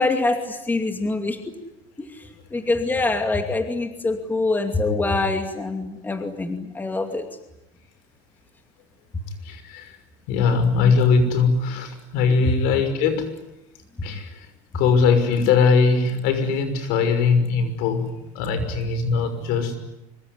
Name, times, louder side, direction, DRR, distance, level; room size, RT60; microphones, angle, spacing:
voice 1, 0.0-1.4 2.5-7.2, left 3 dB, 10° left, 5 dB, 2.5 m, -24 dB
voice 2, 9.4-10.0 10.3-13.3 14.0-14.5 14.7-18.1 18.3-19.8, left 5 dB, 70° left, 9 dB, 6.2 m, -20 dB
25.5 x 23.5 x 9.8 m, 0.90 s
cardioid pair, 140°, 16 cm